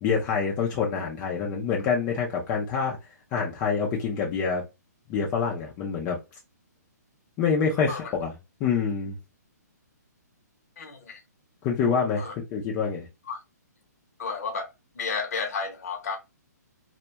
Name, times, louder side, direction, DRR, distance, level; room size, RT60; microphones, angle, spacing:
voice 1, 0.0-3.0 3.3-4.6 5.1-6.2 7.4-8.3 8.6-9.1 11.6-13.1, left 6 dB, 20° left, 0.4 m, -26 dB
voice 2, 10.8-11.2 12.2-12.3 13.3-13.4 14.2-14.7 15.0-16.2, left 5 dB, 55° left, 0.7 m, -32 dB
2.2 x 2.1 x 2.7 m
hypercardioid pair, 155°, 10 cm